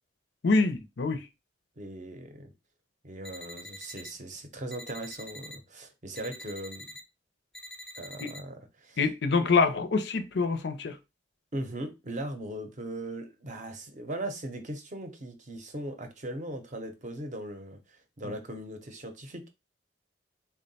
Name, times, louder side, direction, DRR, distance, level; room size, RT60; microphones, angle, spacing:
voice 1, 0.4-1.3 8.2-8.3 9.0-11.0 18.2-18.3, left 4 dB, 65° left, 0.5 m, -26 dB
voice 2, 1.8-2.5 3.0-6.8 8.0-9.0 11.5-19.5, right 1 dB, 40° right, 0.6 m, -39 dB
sound 1, 3.2-4.1 4.7-5.6 6.1-7.0 7.5-8.4, equal, ahead, 0.4 m, -45 dB
3.6 x 2.2 x 4.0 m
head